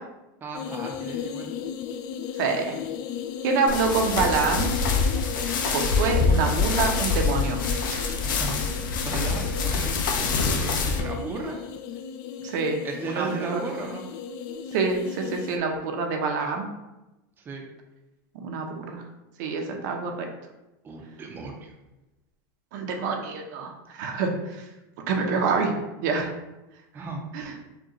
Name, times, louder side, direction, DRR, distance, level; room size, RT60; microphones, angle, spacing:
voice 1, 0.4-1.5 8.2-8.6 9.0-11.6 12.8-14.1 17.5-17.7 20.8-21.7 26.9-27.2, right 4 dB, 20° right, 1 dB, 0.5 m, -35 dB
sound 1, 0.5-15.6, left 7 dB, 45° left, 0.3 m, -35 dB
voice 2, 2.4-2.8 3.4-4.7 5.7-7.6 7.9-8.1 12.4-13.3 13.5-13.6 14.7-16.7 18.4-19.0 19.4-20.3 22.7-24.6 25.1-25.7 26.0-26.3 27.3-27.5, right 4 dB, 65° right, 3 dB, 0.6 m, -26 dB
sound 2, 3.7-11.0, left 4 dB, 90° left, 0.6 m, -25 dB
5.0 x 2.3 x 2.9 m, 1.0 s
supercardioid pair, 140°, 10 cm